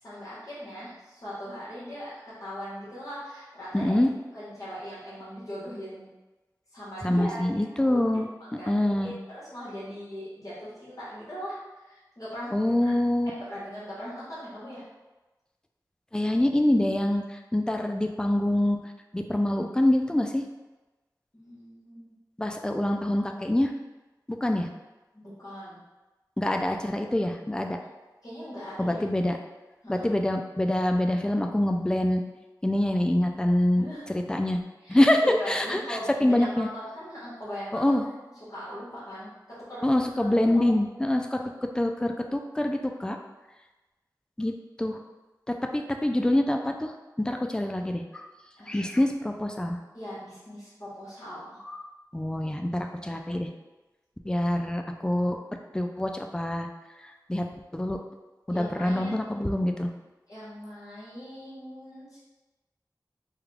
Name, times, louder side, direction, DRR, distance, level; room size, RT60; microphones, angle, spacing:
voice 1, 0.0-4.0 4.3-6.1 6.7-8.1 8.4-12.9 13.3-14.8 21.3-22.2 25.1-25.8 28.2-29.0 29.8-30.1 33.7-34.2 34.8-37.9 38.5-39.9 40.2-40.7 41.3-41.5 48.6-48.9 49.9-51.6 58.5-59.4 60.3-62.2, equal, 50° left, -10 dB, 1.5 m, -39 dB
voice 2, 3.7-4.1 7.0-8.3 8.7-9.1 12.5-13.3 16.1-18.8 19.1-20.4 22.4-23.7 24.3-24.7 26.4-27.8 28.8-29.4 29.9-32.2 32.6-34.6 34.9-35.2 35.5-36.7 37.7-38.1 39.8-41.4 41.8-43.2 44.4-45.0 45.5-48.3 48.7-49.8 51.6-51.8 52.1-53.5 54.3-55.4 55.7-56.7 57.3-57.4 57.7-58.0 58.5-59.9, left 1 dB, 10° left, 4 dB, 0.4 m, -25 dB
3.7 x 2.3 x 3.3 m, 1.1 s
wide cardioid pair, 50°, 7 cm